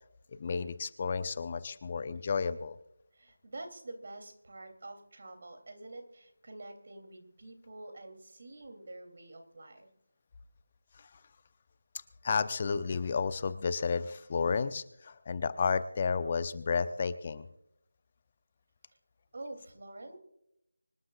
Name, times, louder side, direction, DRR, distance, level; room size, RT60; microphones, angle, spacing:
voice 1, 0.3-2.8 10.9-11.2 12.2-17.5, left 5 dB, 30° left, 13 dB, 0.7 m, -32 dB
voice 2, 3.1-9.9 19.3-20.2, right 2 dB, 50° right, 6 dB, 3.0 m, -47 dB
25.5 x 11.5 x 2.4 m, 0.83 s
figure-of-eight pair, 165°, 0 cm